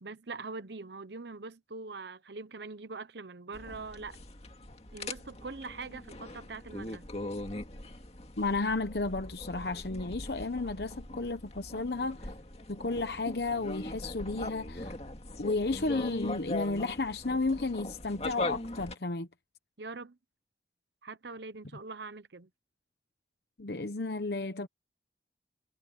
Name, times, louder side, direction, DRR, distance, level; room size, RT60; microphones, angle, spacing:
voice 1, 0.0-4.2 4.9-7.1 19.8-20.2 21.0-22.5, right 3 dB, 70° right, 1.0 m, -43 dB
sound 1, 3.5-18.9, left 2 dB, 35° left, 2.2 m, -41 dB
voice 2, 8.4-12.3 12.7-15.0 15.4-19.3 23.6-24.7, left 3 dB, 60° left, 0.9 m, -33 dB
head